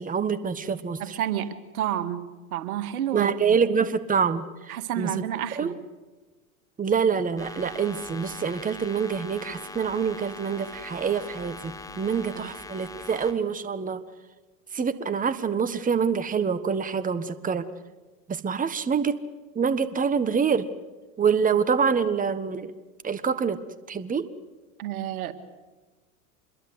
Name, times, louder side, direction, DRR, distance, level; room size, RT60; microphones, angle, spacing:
voice 1, 0.0-1.2 3.1-5.1 5.6-5.7 6.8-14.0 14.7-17.7 18.3-19.2 19.5-20.7 21.2-22.7 23.0-23.6 23.9-24.3, right 6 dB, 20° right, 12 dB, 1.5 m, -26 dB
voice 2, 1.0-2.2 2.5-3.6 4.7-5.7 12.3-12.6 24.8-25.3, right 11 dB, 75° right, 9 dB, 2.2 m, -30 dB
sound 1, 7.4-13.3, left 2 dB, 10° left, 3.8 m, -41 dB
26.0 x 22.0 x 8.1 m, 1.2 s
hypercardioid pair, 95°, 43 cm